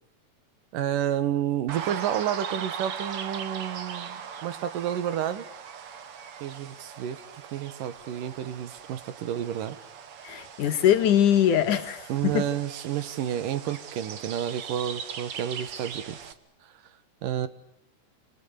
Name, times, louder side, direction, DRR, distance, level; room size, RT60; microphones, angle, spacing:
voice 1, 0.7-5.4 6.4-9.8 12.1-16.2 17.2-17.5, right 10 dB, 80° right, 14 dB, 3.0 m, -30 dB
sound 1, 1.7-16.3, right 7 dB, 50° right, 2.1 m, -40 dB
voice 2, 10.2-12.4, left 10 dB, 70° left, 8 dB, 3.1 m, -22 dB
28.0 x 26.5 x 6.6 m, 0.78 s
omnidirectional pair, 3.8 m